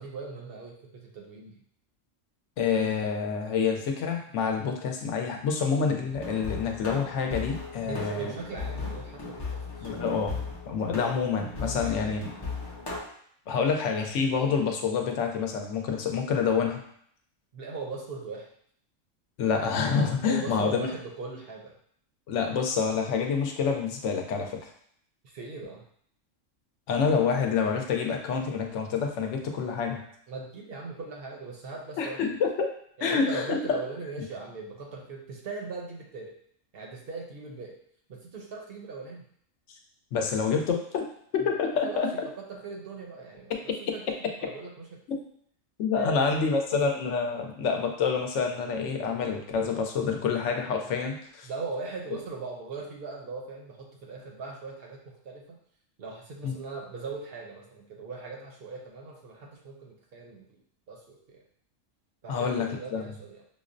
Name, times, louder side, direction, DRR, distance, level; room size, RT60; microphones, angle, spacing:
voice 1, 0.0-1.6 4.6-4.7 7.8-9.9 11.6-12.6 13.6-13.7 17.5-18.5 20.3-21.8 25.2-25.8 30.3-32.2 33.0-36.4 36.7-37.8 38.1-39.2 41.4-45.0 46.0-46.5 47.3-47.5 50.8-51.0 51.4-55.6 56.0-60.6 60.9-61.4 62.2-63.4, right 4 dB, 60° right, 0 dB, 0.7 m, -40 dB
voice 2, 2.6-8.3 9.8-12.3 13.5-16.8 19.4-20.9 22.3-24.7 26.9-30.0 32.0-32.7 33.0-33.8 40.1-42.1 43.5-43.6 45.1-45.2 45.8-51.5 56.4-56.6 62.3-63.1, left 5 dB, 70° left, 3 dB, 0.9 m, -27 dB
sound 1, 6.1-13.0, left 4 dB, 40° left, 0.3 m, -37 dB
5.4 x 2.0 x 2.5 m, 0.65 s
omnidirectional pair, 1.3 m